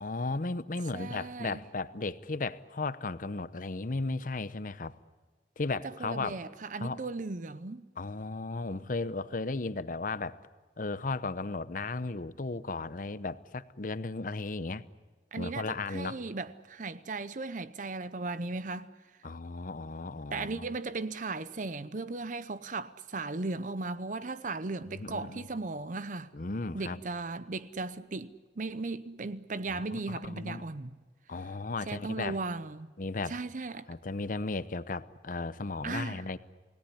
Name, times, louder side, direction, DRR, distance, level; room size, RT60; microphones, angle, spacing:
voice 1, 0.0-5.0 5.6-6.4 6.8-7.0 8.0-10.4 10.8-14.8 15.4-16.2 19.2-20.7 24.9-25.4 26.3-27.0 29.7-30.6 31.3-32.4 33.0-33.4 33.9-36.4, left 3 dB, 50° left, 0.8 m, -35 dB
voice 2, 0.9-1.6 5.8-7.9 15.3-18.9 20.3-26.3 26.7-31.0 31.9-32.9 33.3-33.9 35.8-36.2, right 3 dB, 45° right, 0.7 m, -37 dB
28.5 x 17.5 x 9.9 m
head